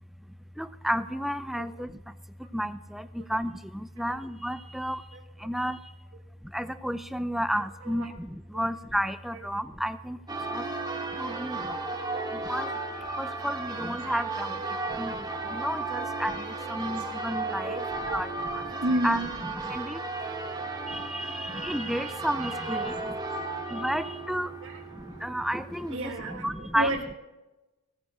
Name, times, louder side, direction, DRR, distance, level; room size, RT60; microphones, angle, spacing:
voice 1, 0.6-2.1 2.4-5.9 6.4-10.7 11.1-11.8 12.3-12.8 13.1-20.0 20.5-20.6 20.9-23.1 23.7-24.5 24.9-26.9, equal, ahead, 12 dB, 0.4 m, -32 dB
voice 2, 5.1-5.5 7.8-8.1 8.5-8.7 9.3-9.4 10.8-10.9 11.3-11.4 11.9-12.3 13.3-13.4 14.1-14.3 14.6-15.0 16.0-16.1 16.8-17.1 17.6-18.2 18.5-19.4 20.6-20.7 21.2-21.3 22.7-22.8 23.2-23.6 24.6-24.8 25.1-25.2 25.9-27.1, right 1 dB, 65° right, 0 dB, 1.5 m, -34 dB
Church bell, 10.3-26.0, right 3 dB, 20° right, 1.5 m, -35 dB
17.5 x 9.1 x 6.7 m, 1.1 s
head